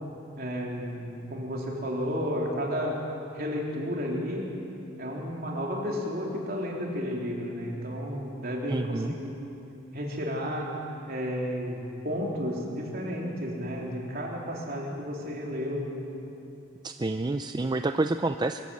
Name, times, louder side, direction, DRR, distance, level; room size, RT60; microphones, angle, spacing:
voice 1, 0.4-1.0 1.3-2.9 3.3-4.4 5.0-9.3 9.9-10.7 11.1-15.9, equal, 50° right, -2 dB, 3.5 m, -32 dB
voice 2, 8.7-9.1 16.8-18.6, right 2 dB, 20° right, 8 dB, 0.4 m, -28 dB
24.0 x 14.5 x 7.7 m, 2.8 s
head